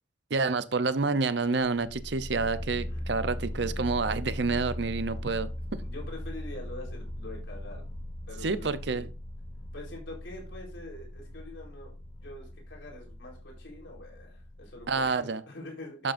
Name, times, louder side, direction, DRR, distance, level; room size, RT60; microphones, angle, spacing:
voice 1, 0.3-5.8 8.4-9.1 14.9-15.4 16.0-16.1, right 4 dB, 65° right, 0.7 m, -28 dB
sound 1, 1.6-15.1, left 1 dB, 30° left, 1.4 m, -39 dB
voice 2, 5.8-7.8 8.3-9.1 9.7-16.0, left 1 dB, 80° left, 4.3 m, -45 dB
11.0 x 7.7 x 2.6 m
head